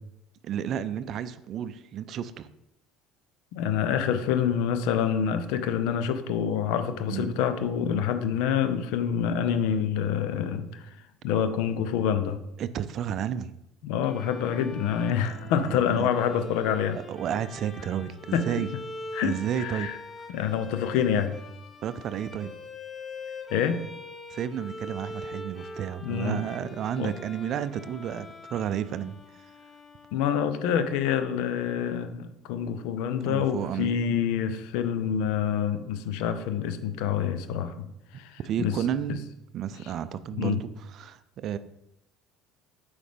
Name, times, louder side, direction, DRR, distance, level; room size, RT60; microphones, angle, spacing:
voice 1, 0.4-2.5 7.1-7.4 12.6-13.5 15.7-16.1 17.1-18.7 19.2-19.9 20.2-20.3 21.8-22.5 24.3-29.2 33.2-33.9 38.4-39.2 39.5-41.6, right 9 dB, 50° right, 13 dB, 0.4 m, -32 dB
voice 2, 3.5-10.8 11.2-12.4 13.8-17.0 18.3-18.5 19.1-20.0 20.3-21.4 23.5-23.8 26.0-26.4 27.0-27.1 30.1-37.9 38.1-38.7 39.1-39.2 40.4-40.6, left 8 dB, 65° left, 10 dB, 0.6 m, -27 dB
Bowed string instrument, 14.0-30.6, left 3 dB, 30° left, 0.9 m, -43 dB
8.3 x 4.9 x 3.6 m, 0.86 s
hypercardioid pair, 65°, 0 cm